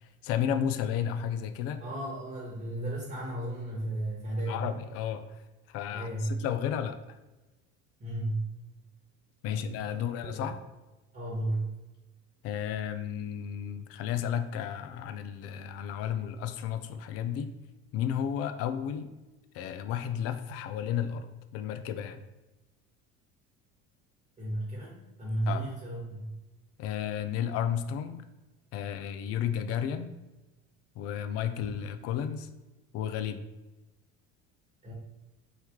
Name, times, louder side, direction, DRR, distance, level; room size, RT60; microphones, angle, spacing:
voice 1, 0.2-1.8 4.5-5.2 5.7-7.0 9.4-10.6 12.4-17.5 17.9-19.1 19.5-21.3 21.5-22.2 25.5-25.7 26.8-28.2 28.7-30.1 31.0-32.5 32.9-33.5, left 9 dB, 55° left, 10 dB, 0.4 m, -32 dB
voice 2, 1.8-4.7 5.9-6.3 8.0-8.5 9.4-10.5 11.1-11.7 24.4-26.3 34.8-34.9, right 1 dB, 25° right, -5 dB, 1.3 m, -34 dB
4.5 x 3.1 x 3.5 m, 1.1 s
cardioid pair, 140°, 29 cm